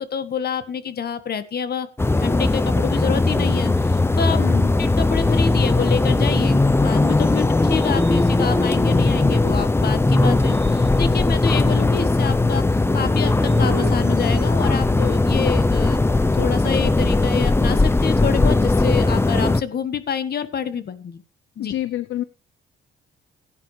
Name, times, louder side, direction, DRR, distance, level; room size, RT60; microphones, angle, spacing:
voice 1, 0.0-1.9 2.2-4.5 4.8-12.6 12.9-16.0 16.3-21.2 21.6-21.7, left 7 dB, 55° left, 12 dB, 1.6 m, -27 dB
sound 1, 2.0-19.6, left 2 dB, 10° left, 0.7 m, -18 dB
voice 2, 4.4-4.7 7.4-7.5 21.6-22.2, left 13 dB, 80° left, 15 dB, 0.7 m, -27 dB
sound 2, 7.5-9.6 10.2-15.3, right 10 dB, 60° right, 1.6 m, -42 dB
16.5 x 9.7 x 3.3 m, 0.31 s
cardioid pair, 90°, 20 cm